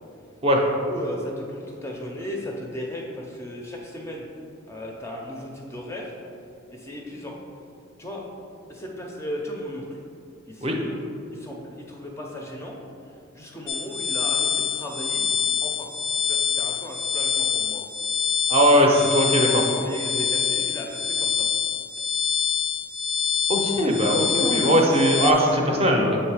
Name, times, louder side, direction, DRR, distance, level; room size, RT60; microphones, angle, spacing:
voice 1, 0.9-4.2 4.7-6.1 6.7-7.3 8.0-8.3 8.7-9.8 10.5-11.0 11.3-12.8 13.3-15.9 16.3-17.8 19.7-21.5, left 1 dB, 15° left, -1 dB, 0.5 m, -36 dB
sound 1, 13.7-25.3, left 7 dB, 70° left, 0.4 m, -25 dB
voice 2, 18.5-19.7 23.5-26.2, equal, 30° right, 0 dB, 0.6 m, -19 dB
6.4 x 3.1 x 4.7 m, 2.6 s
head